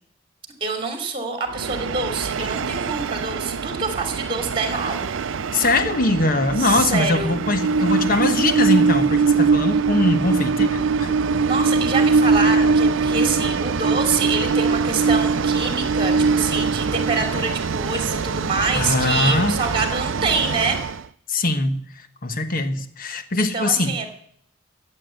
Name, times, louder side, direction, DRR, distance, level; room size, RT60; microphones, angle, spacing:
voice 1, 0.6-5.1 6.6-7.4 11.4-20.8 23.4-24.1, right 4 dB, 25° right, 5 dB, 2.9 m, -26 dB
Train, 1.5-21.0, right 4 dB, 65° right, 0.5 m, -22 dB
voice 2, 5.5-11.1 18.7-19.6 21.3-23.9, left 2 dB, 45° left, 9 dB, 1.2 m, -22 dB
14.0 x 8.8 x 7.8 m, 0.65 s
head